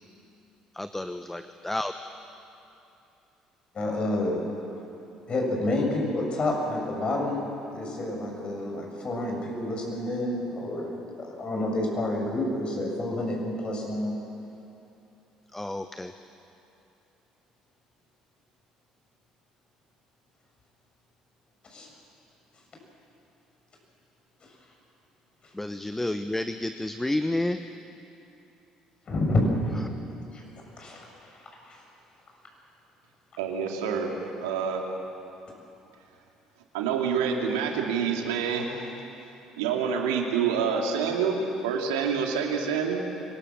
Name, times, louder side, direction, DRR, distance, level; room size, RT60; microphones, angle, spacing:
voice 1, 0.7-1.9 15.5-16.1 25.6-27.6, left 1 dB, 10° left, 9 dB, 0.9 m, -30 dB
voice 2, 3.7-4.4 5.3-7.4 7.7-14.1 21.7-21.9 29.1-29.5 30.3-30.4 30.8-31.4 31.6-31.8, left 1 dB, 45° left, 0 dB, 7.3 m, -29 dB
voice 3, 33.4-34.1 34.4-34.8 36.7-38.9 39.6-41.4 41.6-43.0, right 7 dB, 80° right, 1 dB, 2.5 m, -27 dB
24.0 x 19.0 x 7.4 m, 2.8 s
hypercardioid pair, 55°, 2 cm